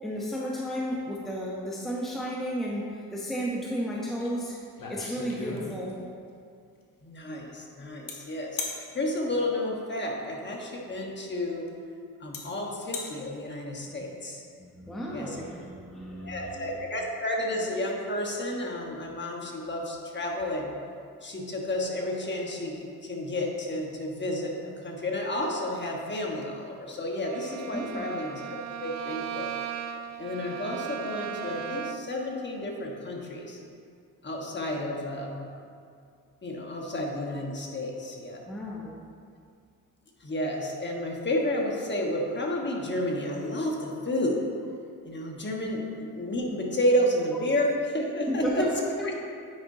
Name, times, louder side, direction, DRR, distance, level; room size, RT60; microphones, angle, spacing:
voice 1, 0.0-4.6 4.9-6.0 14.6-16.7 27.7-28.1 38.5-39.0 48.3-49.2, equal, ahead, -4 dB, 0.8 m, -33 dB
sound 1, 4.2-4.3 4.6-6.1 8.1-8.2 8.6-8.8 10.7-10.8 11.7-11.8 12.3-12.4 12.8-13.1, left 4 dB, 60° left, 1.2 m, -36 dB
voice 2, 7.0-8.6 8.9-11.6 12.2-14.4 15.1-15.4 16.2-20.7 21.2-28.4 28.8-29.6 30.2-33.6 34.2-35.5 36.4-38.4 40.2-44.4 45.0-48.7 49.0-49.1, left 1 dB, 30° left, -1 dB, 1.2 m, -31 dB
Bowed string instrument, 27.2-32.2, right 9 dB, 45° right, 0.4 m, -37 dB
9.6 x 5.1 x 2.7 m, 2.3 s
cardioid pair, 80°, 38 cm